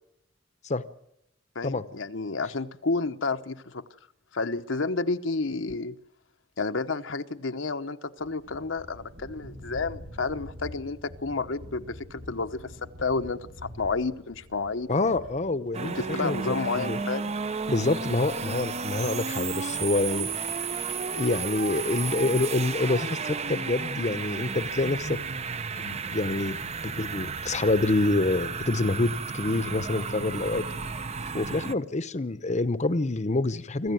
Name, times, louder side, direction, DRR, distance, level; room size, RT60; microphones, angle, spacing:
voice 1, 1.5-3.8 4.3-5.9 6.6-12.7 13.0-14.9 15.8-17.3, left 3 dB, 80° left, 9 dB, 1.0 m, -30 dB
sound 1, 8.2-19.1, left 1 dB, 85° right, 4.0 m, -47 dB
voice 2, 14.9-17.0 17.7-20.3 21.1-25.2 25.8-30.6 31.3-33.9, left 2 dB, 40° left, 13 dB, 0.9 m, -27 dB
sound 2, 15.7-31.7, right 5 dB, 35° right, 0.7 m, -33 dB
25.5 x 14.5 x 9.2 m, 0.83 s
head